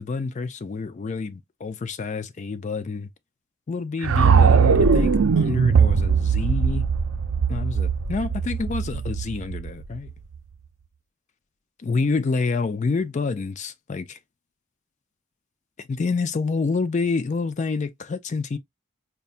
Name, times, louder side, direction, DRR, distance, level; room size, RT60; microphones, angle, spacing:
voice 1, 0.0-3.1 3.7-6.9 7.5-10.1 11.8-14.2 15.8-18.6, left 4 dB, 35° left, 0.3 m, -28 dB
sound 1, 4.0-10.1, right 5 dB, 70° right, 0.5 m, -20 dB
5.4 x 2.2 x 2.4 m
head